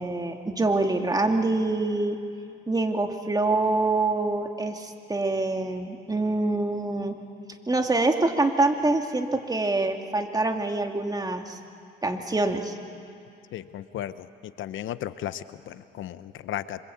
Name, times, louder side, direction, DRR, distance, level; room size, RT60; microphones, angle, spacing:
voice 1, 0.0-2.2 2.7-7.2 7.7-11.6 12.0-12.8, right 2 dB, 20° right, 3 dB, 2.5 m, -25 dB
voice 2, 13.5-16.8, left 12 dB, 80° left, 13 dB, 0.9 m, -35 dB
26.5 x 26.0 x 8.7 m, 2.4 s
cardioid pair, 90°, 20 cm